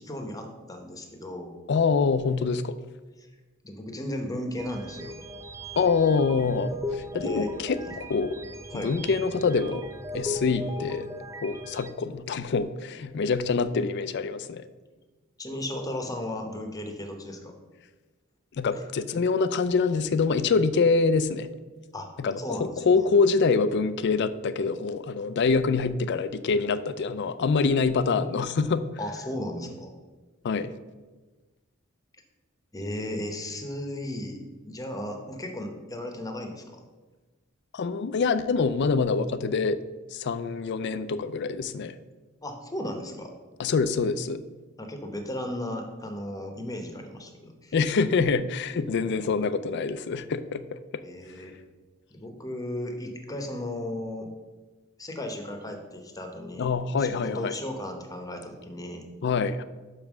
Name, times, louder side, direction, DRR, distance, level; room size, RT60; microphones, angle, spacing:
voice 1, 0.0-1.5 3.6-5.2 7.2-7.5 8.7-8.9 15.4-17.5 18.7-18.8 21.9-22.1 22.4-23.1 29.0-29.9 32.7-34.4 34.6-36.8 42.4-43.3 44.8-47.7 51.0-51.5 52.1-54.3 55.0-56.7 57.0-59.0, left 1 dB, 15° left, 5 dB, 0.9 m, -35 dB
voice 2, 1.7-2.7 5.8-8.4 8.7-9.8 10.1-11.1 11.4-14.6 18.6-21.5 22.2-28.8 30.4-30.7 37.7-39.8 40.1-42.0 43.6-44.4 47.7-50.6 56.6-57.5 59.2-59.6, left 4 dB, 55° left, 13 dB, 0.4 m, -25 dB
sound 1, 4.6-11.9, left 1 dB, 15° right, 0.4 m, -38 dB
5.8 x 5.4 x 6.0 m, 1.3 s
head